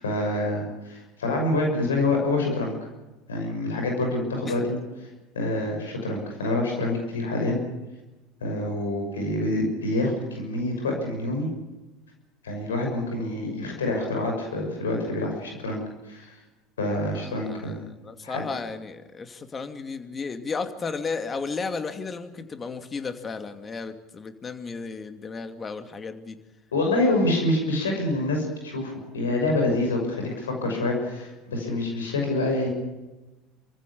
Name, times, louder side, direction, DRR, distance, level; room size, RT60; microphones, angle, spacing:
voice 1, 0.0-2.8 3.3-5.1 5.3-7.6 8.4-11.5 12.4-16.3 16.8-17.8 18.2-18.5 26.7-32.7, left 2 dB, 90° left, 2 dB, 6.3 m, -26 dB
voice 2, 17.1-26.4 27.1-27.2, left 4 dB, 30° left, 8 dB, 2.5 m, -34 dB
28.0 x 15.5 x 8.6 m, 1.1 s
hypercardioid pair, 75°, 0 cm